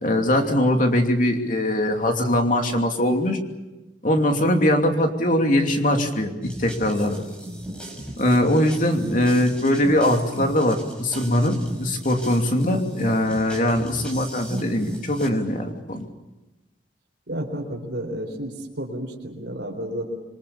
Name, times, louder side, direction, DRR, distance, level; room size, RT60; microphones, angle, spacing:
voice 1, 0.0-3.4 4.0-7.2 8.2-16.0, left 1 dB, 45° left, 3 dB, 2.9 m, -21 dB
sound 1, 6.4-15.3, right 1 dB, 5° left, 5.4 m, -37 dB
voice 2, 17.3-20.1, right 1 dB, 75° right, 2 dB, 4.2 m, -31 dB
27.0 x 23.5 x 7.2 m, 1.0 s
head